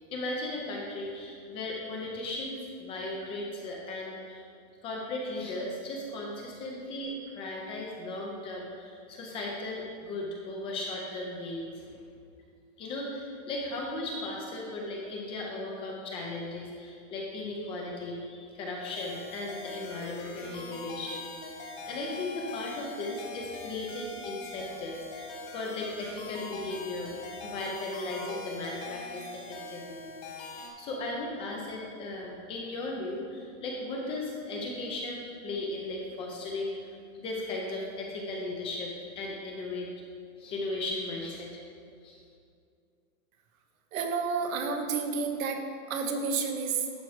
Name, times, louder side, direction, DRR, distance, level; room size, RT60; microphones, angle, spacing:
voice 1, 0.1-4.4 4.8-11.8 12.8-30.1 30.4-39.9 40.4-41.6 42.0-42.2, left 2 dB, 15° left, -1 dB, 0.4 m, -36 dB
sound 1, 18.9-30.7, left 3 dB, 55° left, 1.8 m, -43 dB
voice 2, 43.9-45.6 45.9-46.8, right 5 dB, 85° right, 4 dB, 1.3 m, -30 dB
11.0 x 4.7 x 4.8 m, 2.3 s
supercardioid pair, 165°, 40 cm